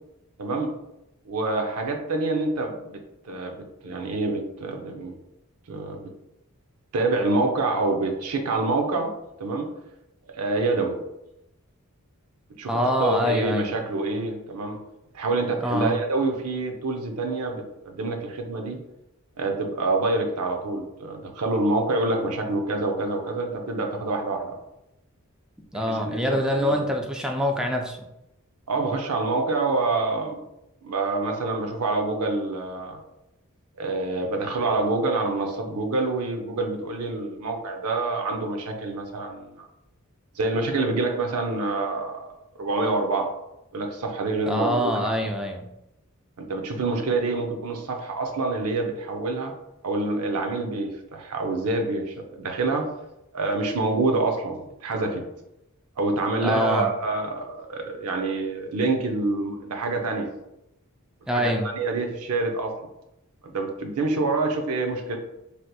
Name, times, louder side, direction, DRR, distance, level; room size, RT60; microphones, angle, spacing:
voice 1, 0.4-0.7 1.3-3.0 3.3-3.6 3.8-5.1 5.7-6.1 6.9-9.1 9.4-9.7 10.4-11.0 12.6-14.8 15.1-18.8 19.4-24.6 25.7-26.2 26.5-26.9 28.7-30.4 30.8-33.0 33.8-39.7 40.4-42.2 42.6-43.3 43.7-45.3 46.4-49.5 49.8-52.9 53.3-55.2 56.0-60.3 61.3-62.7 63.4-65.2, right 3 dB, 90° right, 4 dB, 0.5 m, -26 dB
voice 2, 12.7-13.8 15.6-16.0 25.7-28.0 44.5-45.7 56.4-56.9 61.3-61.7, equal, 5° right, 1 dB, 0.3 m, -25 dB
3.3 x 2.8 x 2.2 m, 0.88 s
head